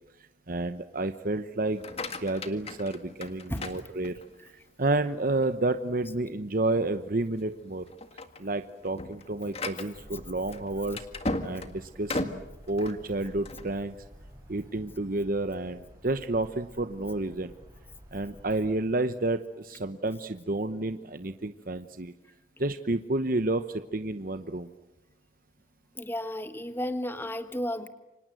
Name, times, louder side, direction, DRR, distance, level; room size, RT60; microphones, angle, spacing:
voice 1, 0.5-1.8 2.2-4.5 4.8-7.9 8.4-11.1 11.4-12.3 12.7-13.9 14.5-17.5 18.1-22.1 22.6-24.7, right 2 dB, 50° right, 9 dB, 1.0 m, -30 dB
sound 1, 1.7-4.5 5.0-5.4 5.9-6.0 6.4-6.6 7.2-7.5 7.9-13.7, left 2 dB, 35° left, 1.8 m, -37 dB
sound 2, 9.9-18.7, equal, 15° right, 6.8 m, -51 dB
voice 2, 26.0-27.9, left 1 dB, 10° left, 9 dB, 1.4 m, -33 dB
29.0 x 25.5 x 7.7 m, 1.0 s
head